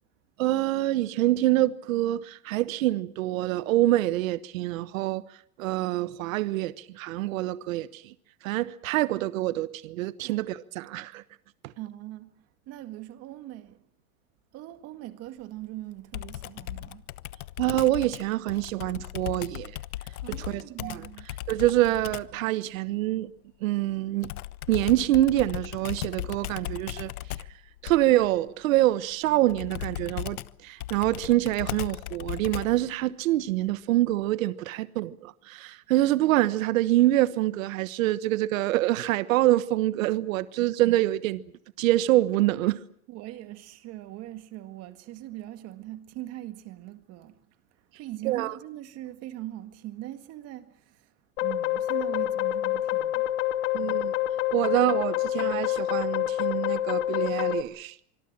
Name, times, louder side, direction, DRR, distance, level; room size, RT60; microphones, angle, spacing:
voice 1, 0.4-5.2 5.6-8.1 8.4-11.2 17.6-19.7 20.4-21.0 21.5-23.3 23.6-24.3 24.7-27.1 27.8-30.4 30.6-41.4 41.8-42.8 48.2-48.5 53.7-54.1 54.5-57.9, right 15 dB, 65° right, 1.2 m, -25 dB
voice 2, 11.8-12.3 12.7-13.8 14.5-17.0 20.2-21.3 34.7-34.9 40.6-40.7 43.1-47.3 48.0-51.1 51.4-53.3 53.8-54.0, right 15 dB, 35° right, 2.0 m, -41 dB
Computer keyboard, 16.1-22.4 24.2-32.9, left 14 dB, 85° left, 1.1 m, -37 dB
sound 1, 51.4-57.6, left 13 dB, 60° left, 2.6 m, -27 dB
25.5 x 22.0 x 7.5 m
supercardioid pair, 155°, 42 cm